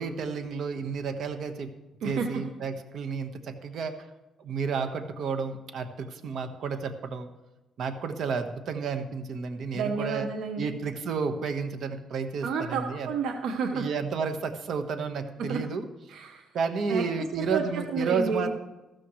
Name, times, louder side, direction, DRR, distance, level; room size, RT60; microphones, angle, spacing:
voice 1, 0.0-1.7 2.0-4.1 4.4-7.3 7.8-10.3 10.6-13.1 13.7-15.9 16.5-18.5, right 5 dB, 65° right, 8 dB, 1.4 m, -31 dB
voice 2, 2.0-2.5 9.7-10.8 12.4-13.9 15.4-15.6 16.1-16.5 16.9-18.5, right 5 dB, 85° right, 6 dB, 1.0 m, -31 dB
14.5 x 13.0 x 3.2 m, 1.1 s
cardioid pair, 90°, 0 cm